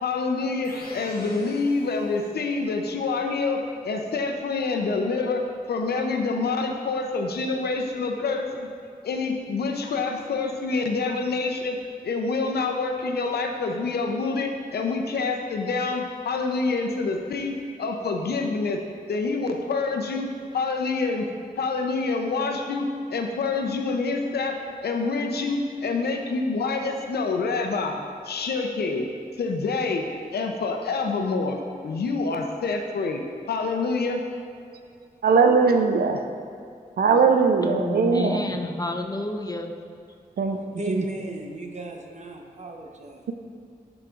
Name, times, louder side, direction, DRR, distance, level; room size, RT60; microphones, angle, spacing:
voice 1, 0.0-3.6 3.8-5.4 5.7-8.7 9.0-11.8 12.0-18.8 19.1-21.3 21.6-24.6 24.8-29.1 29.4-30.0 30.3-31.6 31.8-33.2 33.5-34.2, left 3 dB, 80° left, 4 dB, 0.6 m, -27 dB
sound 1, 0.6-2.5, left 2 dB, 65° left, 1.2 m, -44 dB
voice 2, 35.2-36.2 37.0-38.5 40.4-40.6 40.9-41.0, right 5 dB, 70° right, 6 dB, 0.5 m, -20 dB
voice 3, 37.6-39.7, left 2 dB, 25° left, 4 dB, 0.7 m, -30 dB
voice 4, 40.5-43.3, right 2 dB, 45° right, 2 dB, 0.9 m, -36 dB
12.5 x 4.9 x 2.5 m, 2.4 s
cardioid pair, 45°, 16 cm